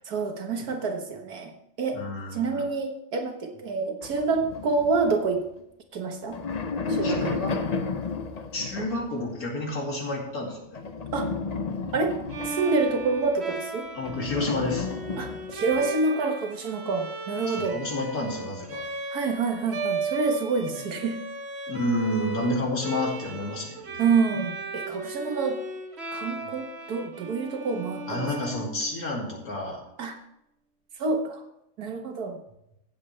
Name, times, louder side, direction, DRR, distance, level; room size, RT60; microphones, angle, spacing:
voice 1, 0.1-1.5 1.8-2.0 2.3-5.4 5.9-6.4 6.9-7.6 11.1-11.3 11.9-12.2 12.5-13.9 15.2-17.8 19.1-21.2 24.0-25.6 26.1-28.3 30.0-30.1 31.0-31.4 31.8-32.4, right 4 dB, 85° right, 4 dB, 1.9 m, -27 dB
voice 2, 1.9-2.6 7.0-7.6 8.5-10.8 13.9-14.9 17.5-18.8 21.7-24.0 28.1-29.8, left 1 dB, 75° left, -1 dB, 2.9 m, -30 dB
sound 1, 4.0-5.6 6.1-9.2 10.7-13.3 14.0-15.9, left 4 dB, 50° left, 0.4 m, -32 dB
Bowed string instrument, 12.3-29.2, right 3 dB, 45° right, 1.2 m, -36 dB
16.0 x 7.6 x 3.3 m, 0.81 s
omnidirectional pair, 1.6 m